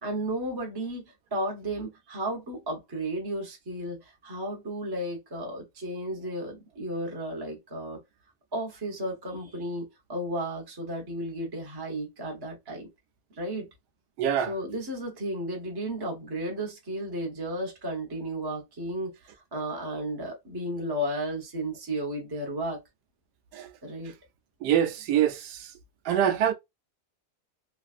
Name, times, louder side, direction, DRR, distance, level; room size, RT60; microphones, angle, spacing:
voice 1, 0.0-8.0 8.5-12.9 13.4-13.7 14.5-22.8 23.8-24.1, right 1 dB, 20° right, 0.6 m, -33 dB
voice 2, 14.2-14.5 23.5-23.7 24.6-25.7 26.0-26.5, right 10 dB, 85° right, 1.1 m, -25 dB
3.3 x 2.4 x 2.4 m
omnidirectional pair, 1.7 m